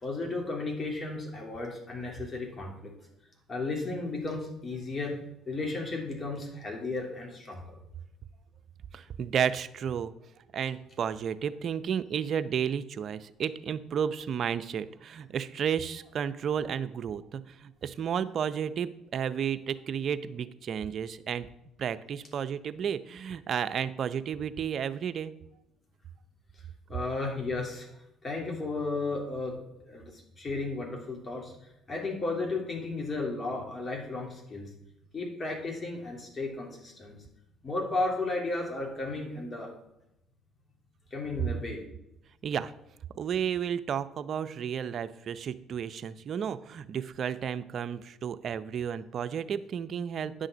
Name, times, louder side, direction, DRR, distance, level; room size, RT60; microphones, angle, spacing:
voice 1, 0.0-2.9 3.5-5.2 5.5-7.8 26.9-27.9 28.2-29.6 29.8-31.5 31.9-34.7 35.1-37.2 37.6-39.7 41.1-41.8, left 3 dB, 35° left, 1 dB, 3.0 m, -34 dB
voice 2, 8.9-10.1 10.5-21.5 21.8-25.3 42.4-42.7 43.1-50.5, right 8 dB, 55° right, 13 dB, 0.5 m, -32 dB
9.5 x 6.4 x 5.1 m, 0.86 s
supercardioid pair, 75°, 0 cm